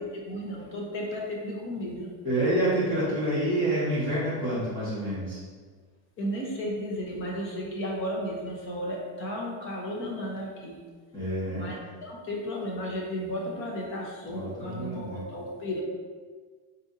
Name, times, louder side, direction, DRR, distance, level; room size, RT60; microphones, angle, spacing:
voice 1, 0.0-2.1 6.2-10.8 11.5-15.8, equal, 25° left, -2 dB, 0.5 m, -34 dB
voice 2, 2.2-5.4 11.1-11.7 14.2-15.2, right 1 dB, 10° left, -13 dB, 0.9 m, -28 dB
4.0 x 2.6 x 3.6 m, 1.5 s
cardioid pair, 170°, 48 cm